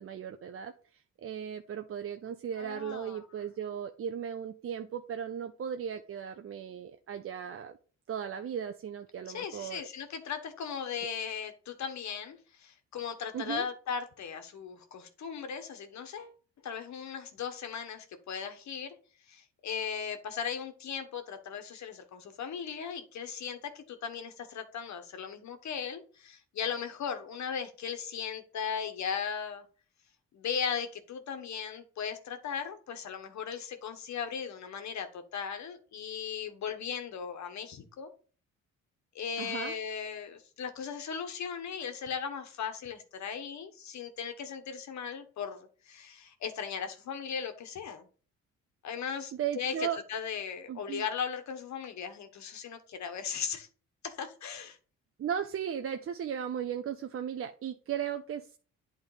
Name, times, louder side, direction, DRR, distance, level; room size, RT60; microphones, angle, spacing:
voice 1, 0.0-7.8 8.1-9.9 13.3-13.7 39.4-39.7 49.3-50.0 50.7-51.0 55.2-58.6, right 8 dB, 45° right, 6 dB, 0.7 m, -36 dB
voice 2, 2.6-3.2 9.3-16.3 16.6-18.9 19.3-29.6 30.3-38.1 39.1-48.1 48.8-53.7 54.0-54.8, left 7 dB, 65° left, 8 dB, 1.4 m, -37 dB
8.7 x 3.6 x 5.0 m, 0.39 s
cardioid pair, 90°, 30 cm